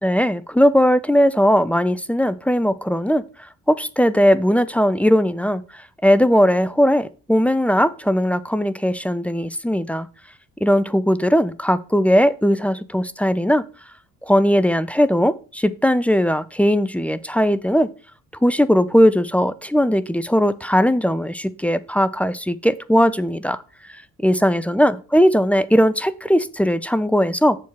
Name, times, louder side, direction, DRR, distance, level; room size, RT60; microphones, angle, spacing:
voice 1, 0.0-3.2 3.7-10.1 10.6-13.6 14.2-17.9 18.4-23.6 24.2-27.6, equal, 5° left, 0.4 m, -18 dB
7.0 x 4.4 x 5.8 m
figure-of-eight pair, 45°, 42 cm